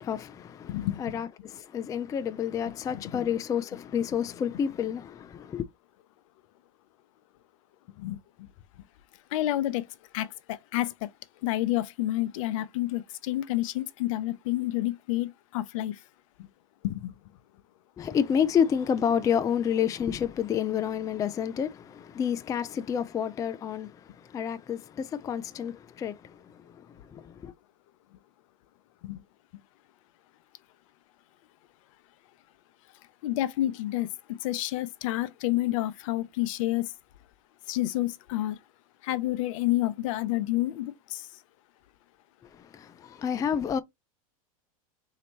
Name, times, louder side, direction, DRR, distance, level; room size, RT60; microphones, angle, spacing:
voice 1, 0.0-5.6 18.0-27.5 42.4-43.8, left 8 dB, 20° left, 0.4 m, -29 dB
voice 2, 0.7-1.2 2.9-3.2 8.0-8.5 9.3-9.8 10.1-11.1 11.4-16.0 16.4-16.5 16.8-17.1 29.0-29.2 33.2-36.9 37.7-38.6 39.0-41.3, left 15 dB, 60° left, 0.6 m, -29 dB
4.2 x 2.9 x 2.9 m
hypercardioid pair, 110°, 18 cm